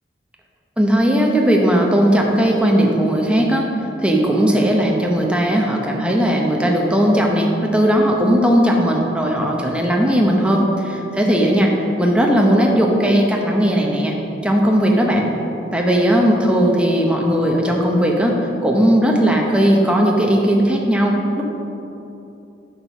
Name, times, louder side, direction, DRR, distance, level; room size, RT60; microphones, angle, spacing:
voice 1, 0.8-3.7 4.0-11.7 12.0-14.1 14.4-15.3 15.7-21.4, equal, 5° right, 0 dB, 0.8 m, -17 dB
8.5 x 4.3 x 5.9 m, 2.9 s
head